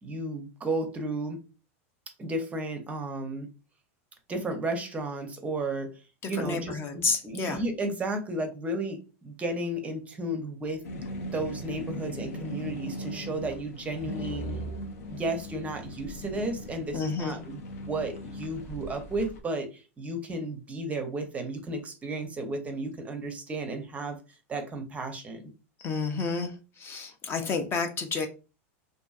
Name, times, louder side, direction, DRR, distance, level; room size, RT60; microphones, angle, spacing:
voice 1, 0.0-1.4 2.2-3.5 4.3-5.9 6.3-10.8 11.3-14.5 15.1-24.2 24.5-25.5, right 2 dB, 20° right, 0.5 m, -33 dB
voice 2, 6.2-7.6 16.9-17.4 25.8-28.3, left 4 dB, 30° left, 0.4 m, -30 dB
sound 1, 10.8-19.4, equal, 90° left, 0.6 m, -38 dB
2.5 x 2.5 x 2.3 m
supercardioid pair, 130°, 8 cm